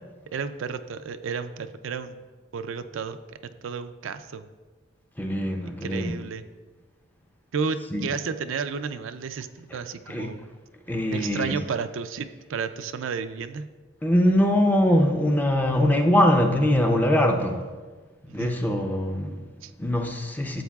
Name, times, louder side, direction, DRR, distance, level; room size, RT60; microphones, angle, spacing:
voice 1, 0.3-2.2 2.5-3.2 3.6-4.5 5.6-6.4 7.5-10.4 11.1-13.7 18.3-18.5 19.6-19.7, right 5 dB, 70° right, 0.4 m, -32 dB
voice 2, 5.2-6.1 7.9-8.0 10.1-10.3 10.9-11.5 14.0-17.7 18.3-19.4 19.8-20.6, left 1 dB, 10° left, 0.5 m, -22 dB
12.5 x 7.8 x 2.3 m
head